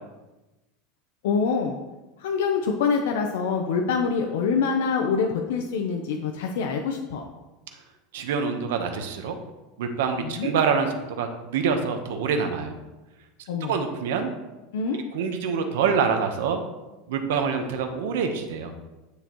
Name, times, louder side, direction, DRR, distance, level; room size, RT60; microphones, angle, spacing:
voice 1, 1.2-1.7 2.2-7.3 10.2-10.5 13.5-13.8 14.7-15.0, left 5 dB, 80° left, 2 dB, 0.8 m, -25 dB
voice 2, 8.1-9.3 9.8-12.7 13.6-14.3 15.1-16.6 17.1-18.7, right 6 dB, 85° right, 5 dB, 1.1 m, -26 dB
9.7 x 6.6 x 3.1 m, 1.1 s
supercardioid pair, 155°, 0 cm